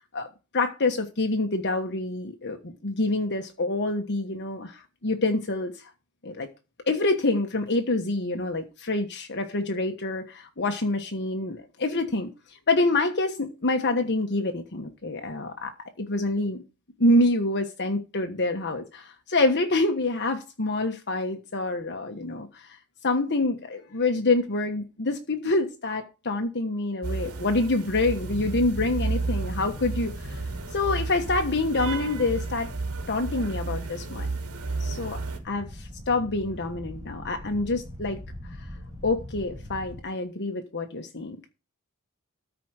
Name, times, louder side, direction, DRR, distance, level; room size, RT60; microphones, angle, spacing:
voice 1, 0.5-5.9 6.2-6.5 6.9-12.3 12.7-16.6 17.0-22.8 23.0-30.4 30.7-32.7 33.1-34.3 34.8-35.2 35.4-38.2 39.0-41.5, left 2 dB, 50° left, 1.3 m, -26 dB
sound 1, 27.0-35.4, right 3 dB, 85° right, 2.9 m, -32 dB
sound 2, 28.2-40.0, left 1 dB, 15° right, 2.8 m, -42 dB
13.5 x 5.1 x 6.4 m
head